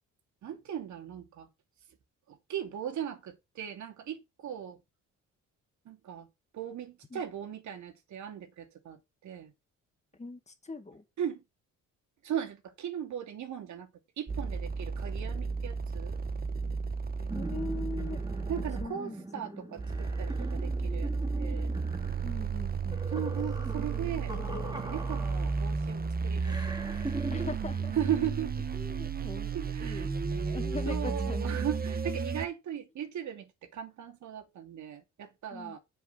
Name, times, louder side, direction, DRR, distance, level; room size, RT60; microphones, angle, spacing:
voice 1, 0.4-1.5 2.3-4.8 5.9-6.3 6.5-9.5 11.2-11.4 12.2-13.9 14.2-16.2 18.5-21.7 23.1-24.3 24.6-27.1 27.3-27.5 28.0-28.5 29.5-30.1 30.9-35.8, right 9 dB, 70° right, 2.7 m, -38 dB
voice 2, 10.2-11.0 17.2-18.3 18.6-19.2 22.2-23.3 27.3-28.0 28.7-31.6 35.5-35.8, left 3 dB, 20° left, 2.1 m, -42 dB
sound 1, 14.3-18.9 19.8-32.5, right 5 dB, 30° right, 1.4 m, -33 dB
sound 2, 17.3-25.8 26.4-27.5, right 1 dB, 15° right, 2.7 m, -41 dB
8.3 x 7.4 x 4.2 m
cardioid pair, 90°, 30 cm